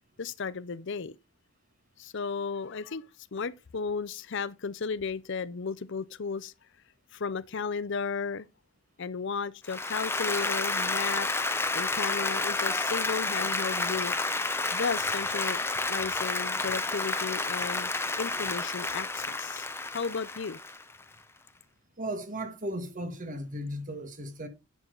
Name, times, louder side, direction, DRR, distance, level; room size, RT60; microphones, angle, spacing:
voice 1, 0.2-1.2 2.0-6.5 7.1-8.5 9.0-11.3 11.7-14.1 14.7-15.6 15.9-17.9 18.2-19.7 19.9-20.6, left 5 dB, 55° left, 0.6 m, -34 dB
Applause, 9.7-21.0, left 3 dB, 10° left, 0.8 m, -30 dB
voice 2, 22.0-24.5, right 1 dB, 40° right, 1.7 m, -36 dB
11.0 x 7.5 x 3.9 m
head